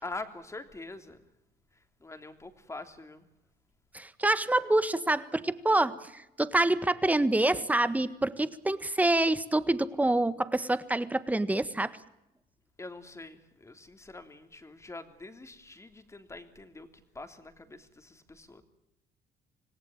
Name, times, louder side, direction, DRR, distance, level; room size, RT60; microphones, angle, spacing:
voice 1, 0.0-1.2 1.7-3.3 12.8-18.6, left 2 dB, 15° left, 8 dB, 3.2 m, -44 dB
voice 2, 3.9-11.9, right 2 dB, 10° right, 14 dB, 1.5 m, -26 dB
26.5 x 19.0 x 8.9 m, 0.88 s
cardioid pair, 110°, 17 cm